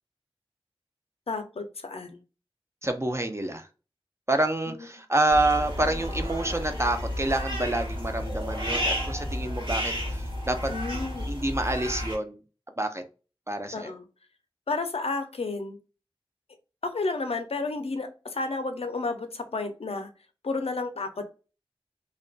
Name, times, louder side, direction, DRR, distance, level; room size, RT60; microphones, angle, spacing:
voice 1, 1.3-2.2 10.7-11.3 13.7-14.0 14.7-15.8 16.8-20.1 20.4-21.3, left 3 dB, 90° left, 0.4 m, -31 dB
voice 2, 2.8-3.7 4.3-10.7 11.3-12.4 12.8-13.0 13.5-13.9, right 1 dB, 30° right, 0.3 m, -27 dB
sound 1, 5.3-12.2, equal, 60° right, 1.1 m, -31 dB
2.5 x 2.2 x 2.3 m
wide cardioid pair, 45°, 10 cm